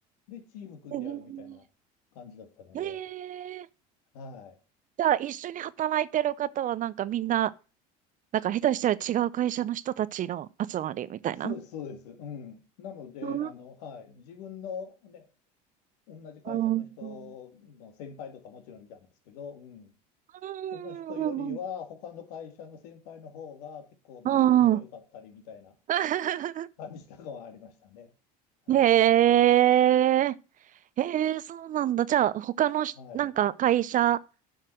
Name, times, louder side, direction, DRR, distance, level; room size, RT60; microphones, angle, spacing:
voice 1, 0.3-1.7 2.1-3.0 4.1-4.6 11.4-15.3 16.1-19.9 20.7-25.7 26.8-28.1 28.7-28.9 33.0-33.3, left 7 dB, 80° left, 2.2 m, -43 dB
voice 2, 0.9-1.6 2.7-3.7 5.0-7.5 8.3-11.5 13.2-13.5 16.5-17.2 20.4-21.6 24.2-24.8 25.9-26.7 28.7-30.3 31.0-34.2, right 12 dB, 40° right, 0.6 m, -25 dB
7.7 x 5.8 x 7.6 m
supercardioid pair, 90°, 20 cm